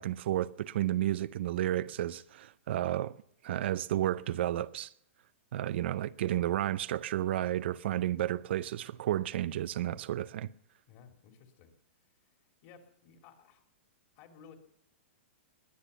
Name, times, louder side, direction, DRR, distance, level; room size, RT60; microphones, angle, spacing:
voice 1, 0.0-3.1 3.4-4.9 5.5-10.5, right 13 dB, 60° right, 0.6 m, -32 dB
voice 2, 10.9-11.7 12.6-13.6 14.2-14.5, left 7 dB, 40° left, 3.0 m, -56 dB
21.0 x 10.0 x 6.9 m
hypercardioid pair, 155°, 7 cm